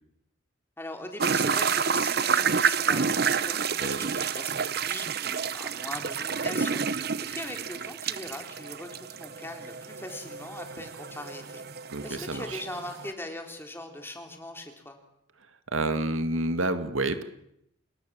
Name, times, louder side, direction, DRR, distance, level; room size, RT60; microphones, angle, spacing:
voice 1, 0.8-11.6 12.0-15.0, left 1 dB, 10° left, 4 dB, 3.6 m, -41 dB
sound 1, 1.2-13.1, right 6 dB, 50° right, 0.9 m, -29 dB
voice 2, 11.9-12.6 15.7-17.2, right 2 dB, 80° right, 9 dB, 2.2 m, -29 dB
28.5 x 20.5 x 7.6 m, 0.77 s
head